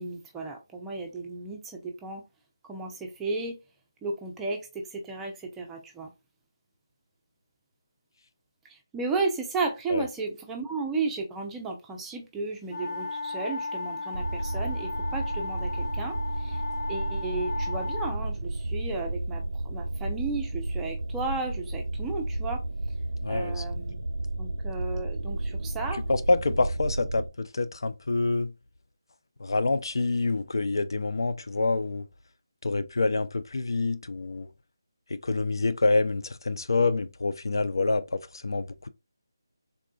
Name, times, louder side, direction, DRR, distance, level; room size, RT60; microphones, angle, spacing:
voice 1, 0.0-2.2 2.6-3.6 4.0-6.1 8.6-16.6 16.9-22.6 23.3-24.0 24.4-26.0, right 3 dB, 5° right, 0.5 m, -34 dB
sound 1, 12.7-18.2, left 3 dB, 45° left, 0.8 m, -35 dB
sound 2, 14.1-27.3, right 2 dB, 80° right, 0.4 m, -32 dB
voice 2, 23.2-23.6 26.1-28.5 29.4-32.0 32.6-34.5 35.1-38.9, left 3 dB, 65° left, 0.4 m, -27 dB
3.6 x 2.3 x 2.3 m
figure-of-eight pair, 160°, 2 cm